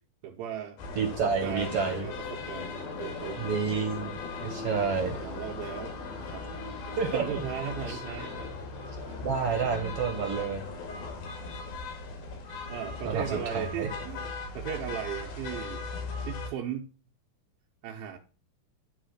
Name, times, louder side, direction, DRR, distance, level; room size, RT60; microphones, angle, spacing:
voice 1, 0.2-0.8 1.2-3.5 5.2-6.4 7.1-8.5 12.7-14.2 14.5-15.8 16.3-16.9 17.8-18.2, right 9 dB, 85° right, 2.8 m, -37 dB
sound 1, 0.8-16.5, left 4 dB, 85° left, 3.9 m, -38 dB
voice 2, 1.0-2.1 3.4-4.1 4.4-5.2 7.0-7.2 7.9-8.0 9.2-10.6 13.1-13.9, right 5 dB, 55° right, 1.8 m, -29 dB
11.0 x 3.7 x 6.4 m
omnidirectional pair, 4.1 m